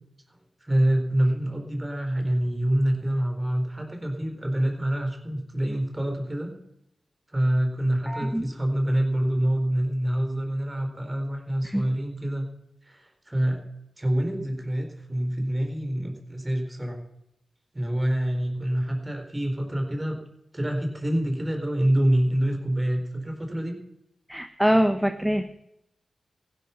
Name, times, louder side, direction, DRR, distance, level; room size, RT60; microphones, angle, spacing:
voice 1, 0.6-6.6 7.3-12.5 12.8-13.6 14.0-17.0 17.7-20.2 20.5-23.8, right 1 dB, 20° right, 4 dB, 4.3 m, -26 dB
voice 2, 8.1-8.5 11.6-11.8 24.3-25.4, equal, 5° right, 7 dB, 1.1 m, -24 dB
15.5 x 11.5 x 5.9 m, 0.82 s
cardioid pair, 65°, 0 cm